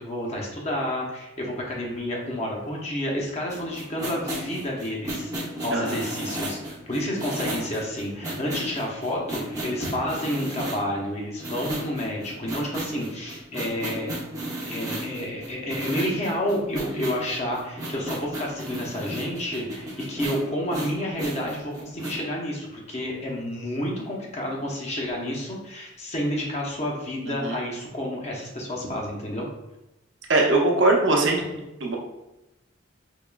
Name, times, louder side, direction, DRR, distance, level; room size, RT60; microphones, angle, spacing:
voice 1, 0.0-5.3 5.6-14.1 14.7-29.5, equal, 35° left, -2 dB, 0.8 m, -30 dB
sound 1, 3.5-10.9 11.4-22.2, right 1 dB, 20° right, 0.7 m, -34 dB
voice 2, 30.3-31.4 31.8-32.0, right 2 dB, 65° right, -1 dB, 0.8 m, -21 dB
4.7 x 2.9 x 2.3 m, 0.96 s
head